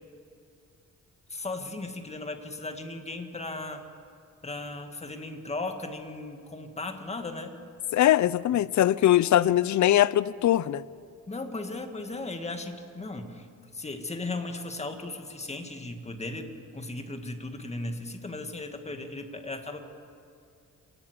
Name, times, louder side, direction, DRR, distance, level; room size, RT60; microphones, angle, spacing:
voice 1, 1.3-3.8 4.4-7.5 9.3-9.5 11.3-13.5 13.7-19.8, left 2 dB, 20° left, 5 dB, 1.9 m, -36 dB
voice 2, 7.9-10.8, left 12 dB, 65° left, 19 dB, 0.6 m, -21 dB
26.0 x 18.5 x 8.1 m, 2.4 s
cardioid pair, 130°, 32 cm